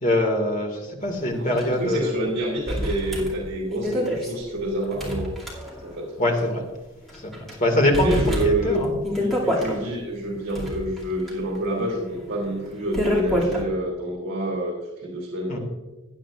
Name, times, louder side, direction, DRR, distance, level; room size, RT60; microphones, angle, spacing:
voice 1, 0.0-2.1 6.2-6.6 7.1-8.2 8.4-9.0 15.5-15.6, left 1 dB, 40° left, 2 dB, 2.0 m, -23 dB
voice 2, 1.3-5.3 5.8-6.2 7.8-8.8 9.1-15.6, right 1 dB, 60° right, -2 dB, 3.0 m, -28 dB
sound 1, 1.6-1.7 1.9-2.0 2.7-6.1 6.4-6.5 7.1-7.5 7.9-9.8 10.3-13.6, equal, ahead, 2.4 m, -28 dB
16.5 x 10.0 x 2.4 m, 1.2 s
head